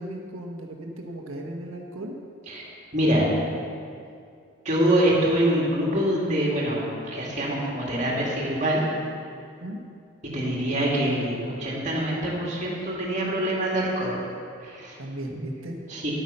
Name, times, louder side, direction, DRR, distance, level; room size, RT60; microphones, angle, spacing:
voice 1, 0.0-2.2 9.6-9.8 15.0-15.8, right 1 dB, 85° right, 1 dB, 1.4 m, -36 dB
voice 2, 2.9-3.3 4.6-8.8 10.2-14.2 14.6-15.0 15.9-16.1, right 1 dB, 35° right, -4 dB, 2.4 m, -25 dB
10.5 x 9.6 x 5.6 m, 2.4 s
head